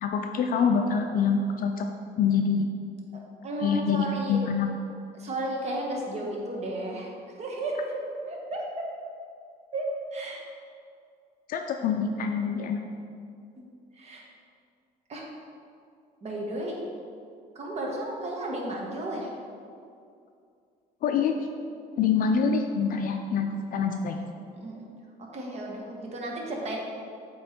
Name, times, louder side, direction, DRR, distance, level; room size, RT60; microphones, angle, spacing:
voice 1, 0.0-1.9 2.2-2.7 3.6-4.7 11.5-12.8 21.0-21.3 22.0-24.3, left 6 dB, 55° left, 4 dB, 0.4 m, -25 dB
voice 2, 3.4-4.4 5.1-7.1 7.4-7.9 8.3-8.8 9.7-10.4 13.6-13.7 14.0-14.2 15.1-15.2 16.2-16.8 17.5-19.3 24.5-24.8 25.3-26.8, right 1 dB, 40° right, -1 dB, 1.2 m, -33 dB
7.6 x 3.1 x 4.4 m, 2.4 s
cardioid pair, 110°, 17 cm